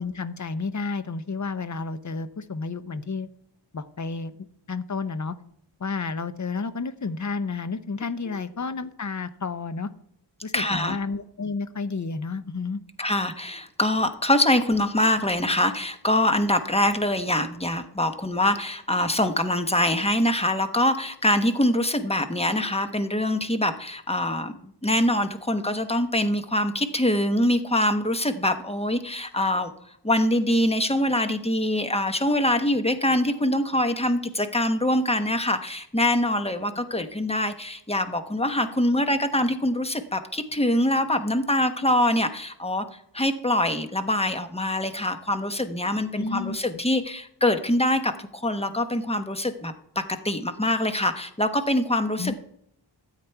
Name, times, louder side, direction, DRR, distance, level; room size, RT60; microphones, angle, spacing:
voice 1, 0.0-3.3 3.7-4.3 4.7-5.4 5.8-9.9 10.4-12.8 36.9-37.0 46.2-46.6 52.2-52.3, left 4 dB, 40° left, 13 dB, 0.7 m, -31 dB
voice 2, 10.5-11.0 13.0-29.7 30.0-42.8 43.1-52.3, left 1 dB, 15° left, 9 dB, 1.0 m, -24 dB
13.0 x 8.5 x 4.6 m, 0.72 s
wide cardioid pair, 60°, 44 cm